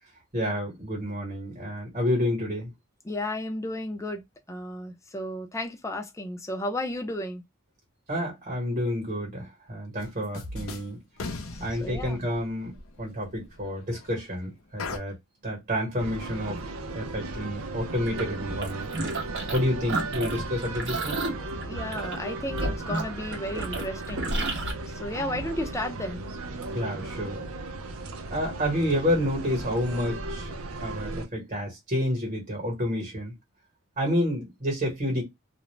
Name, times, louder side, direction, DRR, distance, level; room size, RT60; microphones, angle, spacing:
voice 1, 0.3-2.7 8.1-11.0 11.6-15.2 15.4-16.6 16.9-18.9 19.5-21.2 26.7-27.4 28.3-30.5 30.8-33.3 34.0-35.2, equal, 40° right, 1.2 m, -29 dB
voice 2, 3.0-4.2 4.5-7.4 11.5-12.2 21.6-24.3 24.9-26.2, left 1 dB, 15° left, 0.5 m, -33 dB
sound 1, 10.0-10.1 10.3-10.9 11.2-14.3 14.8-15.0, left 3 dB, 80° left, 0.6 m, -38 dB
sound 2, 16.0-31.3, right 2 dB, 90° right, 0.5 m, -36 dB
sound 3, 18.1-19.6 19.9-24.7, right 2 dB, 60° right, 0.9 m, -32 dB
2.4 x 2.1 x 3.1 m
head